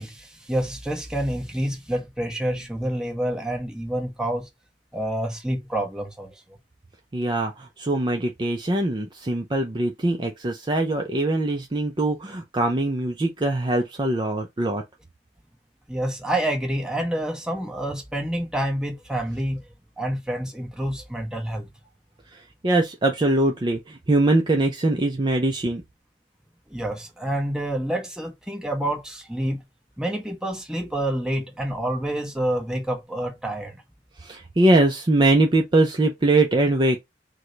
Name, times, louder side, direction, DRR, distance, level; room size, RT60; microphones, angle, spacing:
voice 1, 0.0-4.5 4.9-6.3 15.9-19.6 20.0-21.7 26.7-29.6 30.0-33.8, right 1 dB, 5° right, 1.0 m, -28 dB
voice 2, 7.1-14.8 22.3-25.8 34.2-37.0, right 2 dB, 25° right, 0.5 m, -22 dB
4.7 x 2.2 x 3.8 m
head